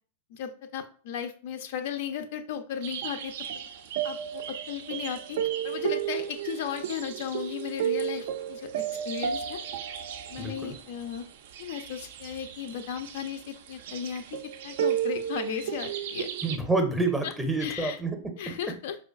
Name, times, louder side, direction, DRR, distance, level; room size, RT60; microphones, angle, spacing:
voice 1, 0.3-3.3 4.0-8.7 9.0-9.6 10.3-11.2 11.6-16.3 17.2-17.3 17.6-18.0 18.4-19.0, left 8 dB, 50° left, 7 dB, 0.3 m, -35 dB
sound 1, 2.8-16.6, right 9 dB, 55° right, 0.3 m, -33 dB
voice 2, 10.4-10.8 16.4-18.5, right 2 dB, 5° right, 4 dB, 0.6 m, -28 dB
4.8 x 2.2 x 2.4 m, 0.43 s
figure-of-eight pair, 95°, 0 cm